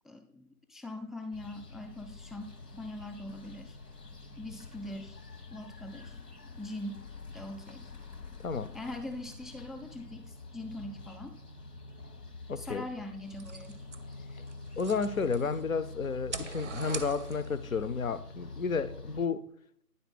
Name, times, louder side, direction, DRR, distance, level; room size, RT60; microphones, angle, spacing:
voice 1, 0.0-2.5 2.7-3.8 4.4-5.2 5.5-6.2 6.6-7.1 7.3-7.9 8.7-11.4 12.6-13.8, left 1 dB, ahead, 0.4 m, -42 dB
sound 1, 1.3-19.3, left 3 dB, 90° left, 1.2 m, -46 dB
voice 2, 12.5-12.8 14.8-19.4, left 5 dB, 60° left, 0.5 m, -32 dB
sound 2, 13.3-15.6 16.1-17.7, right 3 dB, 50° right, 0.5 m, -42 dB
9.4 x 3.9 x 4.0 m
figure-of-eight pair, 155°, 46 cm